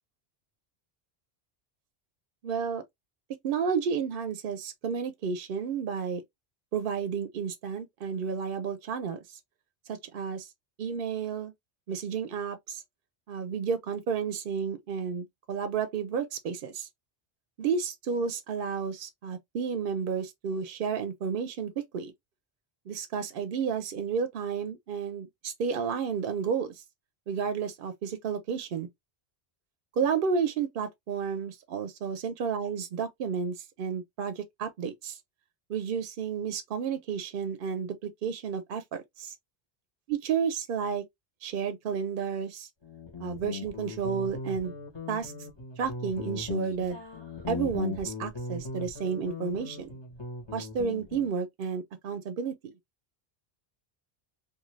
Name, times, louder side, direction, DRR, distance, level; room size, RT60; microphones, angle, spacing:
voice 1, 2.4-2.8 3.4-6.2 6.7-9.2 9.9-10.5 10.8-11.5 11.9-12.8 13.3-16.9 17.6-22.1 22.9-26.7 27.3-28.9 30.0-35.2 35.7-39.3 40.1-41.0 41.4-42.7 43.2-44.7 45.1-45.3 45.8-47.0 47.5-50.0 50.5-52.7, right 6 dB, 65° right, 0.7 m, -31 dB
Guitar, 42.8-51.3, left 4 dB, 30° left, 0.9 m, -38 dB
2.6 x 2.5 x 3.0 m
omnidirectional pair, 1.0 m